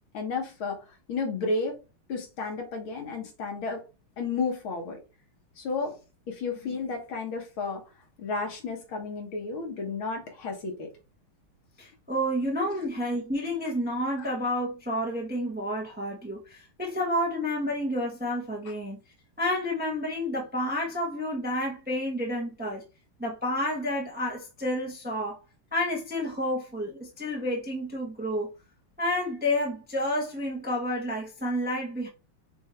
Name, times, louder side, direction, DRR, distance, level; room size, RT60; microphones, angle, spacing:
voice 1, 0.1-1.8 2.1-3.8 4.2-5.0 5.6-6.0 6.3-7.8 8.2-10.9, left 4 dB, 70° left, 2.2 m, -32 dB
voice 2, 11.8-19.0 19.4-22.8 23.2-25.4 25.7-28.5 29.0-32.1, left 1 dB, 5° right, 0.7 m, -30 dB
6.2 x 2.7 x 3.1 m
omnidirectional pair, 2.3 m